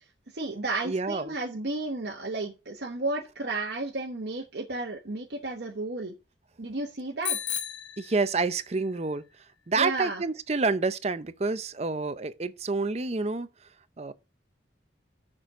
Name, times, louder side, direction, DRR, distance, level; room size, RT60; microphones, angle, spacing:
voice 1, 0.3-6.1 6.6-7.4 9.7-10.2, right 2 dB, 60° right, 1.0 m, -33 dB
voice 2, 0.8-1.3 8.0-9.2 9.7-13.5 14.0-14.1, right 3 dB, 35° right, 0.6 m, -28 dB
Bicycle bell, 7.2-8.8, left 10 dB, 70° left, 1.5 m, -34 dB
6.8 x 6.1 x 6.0 m
head